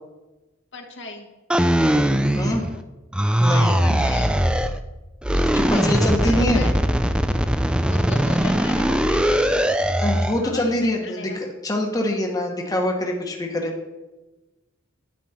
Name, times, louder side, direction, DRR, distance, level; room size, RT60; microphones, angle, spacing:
voice 1, 0.7-1.3 3.8-4.4 5.7-6.8 7.8-9.7 10.4-11.4, left 4 dB, 60° left, 2 dB, 1.4 m, -37 dB
sound 1, 1.5-2.8 3.1-4.8 5.2-10.4, equal, 5° right, 0.4 m, -20 dB
voice 2, 3.4-3.8 5.5-6.6 10.0-13.7, left 1 dB, 20° left, 0 dB, 1.3 m, -24 dB
11.5 x 9.5 x 4.4 m, 1.1 s
head